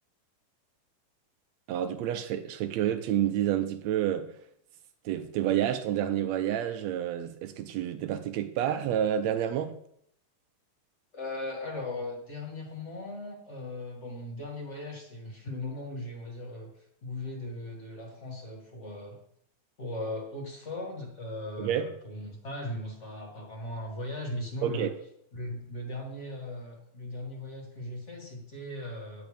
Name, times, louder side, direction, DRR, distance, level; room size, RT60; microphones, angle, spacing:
voice 1, 1.7-4.3 5.0-9.8 21.6-21.9 24.6-24.9, right 10 dB, 80° right, 1.6 m, -29 dB
voice 2, 11.1-16.7 17.0-19.2 19.8-24.9 25.3-29.3, left 1 dB, 25° left, 1.7 m, -38 dB
10.5 x 9.2 x 3.4 m
omnidirectional pair, 3.6 m